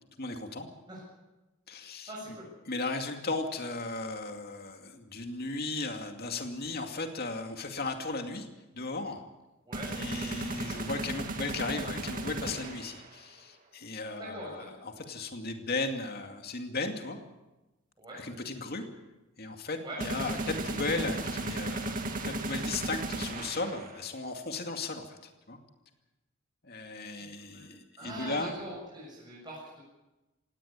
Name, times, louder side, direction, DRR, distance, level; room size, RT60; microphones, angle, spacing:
voice 1, 0.2-0.7 1.7-2.4 2.7-8.5 8.7-9.2 9.9-17.2 18.1-18.8 19.4-25.6 26.6-28.6, left 3 dB, 50° left, 4 dB, 2.4 m, -36 dB
voice 2, 2.1-2.5 9.7-9.9 14.2-14.7 18.0-18.2 19.8-20.0 27.5-27.6 28.0-29.8, right 1 dB, 20° right, -5 dB, 7.3 m, -42 dB
sound 1, 9.7-13.1 20.0-24.1, right 2 dB, 40° right, 2.3 m, -35 dB
18.5 x 17.5 x 8.8 m, 1.0 s
head